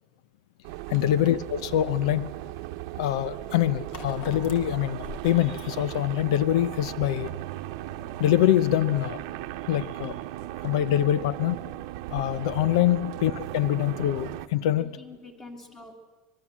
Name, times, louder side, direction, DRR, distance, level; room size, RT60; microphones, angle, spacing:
sound 1, 0.6-14.5, right 15 dB, 60° right, 0.9 m, -37 dB
voice 1, 0.9-2.3 3.0-7.3 8.2-9.2 9.7-10.2 10.6-11.6 12.1-14.9, left 12 dB, 85° left, 0.7 m, -24 dB
sound 2, 1.8-7.1, left 4 dB, 45° left, 2.8 m, -45 dB
voice 2, 14.8-15.9, left 3 dB, 15° left, 2.4 m, -46 dB
25.0 x 21.5 x 7.4 m
cardioid pair, 180°, 3 cm